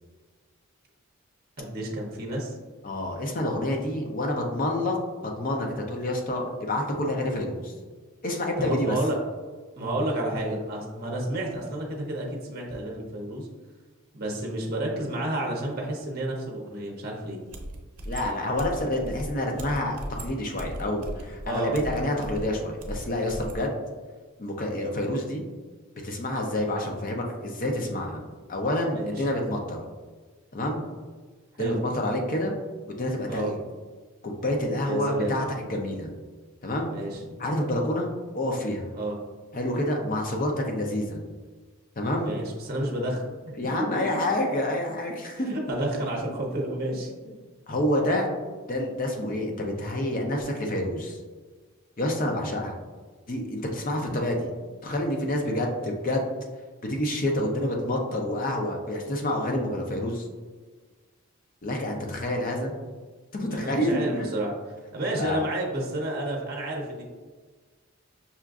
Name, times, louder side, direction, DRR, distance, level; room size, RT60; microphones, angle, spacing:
voice 1, 1.6-2.6 8.6-9.2 9.8-13.5 14.1-17.4 21.5-21.8 28.9-29.1 31.6-31.8 33.3-33.5 34.8-35.4 36.9-37.2 38.9-39.2 42.2-43.3 45.7-47.3 53.9-54.2 63.5-64.5 64.9-67.0, right 1 dB, 45° right, -1 dB, 0.7 m, -30 dB
voice 2, 2.8-7.7 8.2-9.0 18.1-23.7 24.4-25.4 26.0-28.2 28.5-29.8 30.5-30.8 31.6-32.5 33.0-33.6 34.2-36.1 36.6-36.9 37.4-38.1 38.3-38.9 39.5-41.2 42.0-42.3 43.6-45.5 47.7-48.3 48.7-51.2 52.0-52.8 53.3-54.5 54.8-56.3 56.9-60.3 61.6-62.7 63.3-64.3 65.2-65.4, left 1 dB, 40° left, 1 dB, 0.5 m, -28 dB
sound 1, 17.5-23.6, right 1 dB, 90° right, 0.6 m, -38 dB
5.6 x 2.4 x 2.4 m, 1.4 s
head